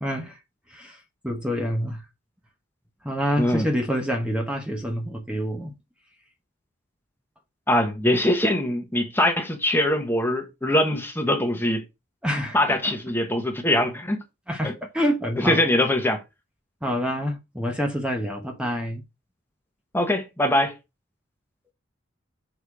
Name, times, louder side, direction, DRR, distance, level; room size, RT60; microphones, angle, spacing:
voice 1, 0.0-0.4 0.7-2.1 3.0-5.7 12.2-13.0 14.5-15.6 16.8-19.0, equal, 5° right, 1.2 m, -27 dB
voice 2, 7.7-11.8 12.5-14.2 14.6-14.7 15.4-16.2 19.9-20.8, left 1 dB, 10° left, 1.3 m, -22 dB
6.7 x 4.5 x 4.9 m
head